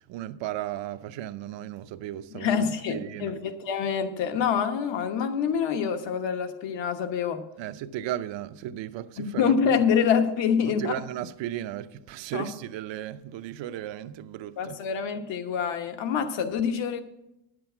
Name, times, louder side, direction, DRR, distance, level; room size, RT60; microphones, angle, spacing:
voice 1, 0.0-3.3 7.6-9.7 10.6-14.8, right 12 dB, 90° right, 0.7 m, -35 dB
voice 2, 2.3-7.4 9.2-11.0 12.3-12.5 14.6-17.0, left 7 dB, 80° left, 1.2 m, -26 dB
10.5 x 7.7 x 6.2 m
cardioid pair, 165°, 43 cm